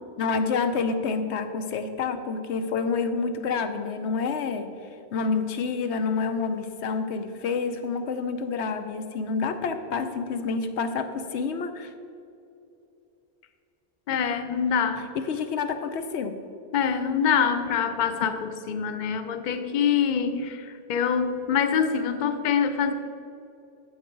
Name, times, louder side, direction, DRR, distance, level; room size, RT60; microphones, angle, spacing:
voice 1, 0.2-4.7 5.1-11.9 15.1-16.4, left 5 dB, 90° left, 8 dB, 1.0 m, -28 dB
voice 2, 14.1-15.1 16.7-22.9, left 7 dB, 50° left, 9 dB, 0.7 m, -25 dB
9.4 x 7.4 x 4.6 m, 2.7 s
omnidirectional pair, 1.1 m